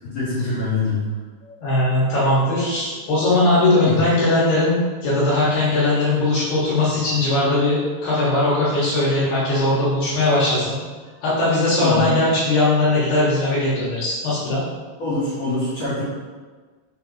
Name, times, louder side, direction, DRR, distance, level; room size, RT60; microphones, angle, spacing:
voice 1, 0.0-1.0 3.8-3.9 11.8-12.2 15.0-16.0, left 3 dB, 50° left, -13 dB, 2.4 m, -24 dB
voice 2, 1.4-10.8 11.2-14.6, left 2 dB, 65° left, -10 dB, 3.3 m, -19 dB
7.0 x 3.8 x 4.2 m, 1.4 s
omnidirectional pair, 5.4 m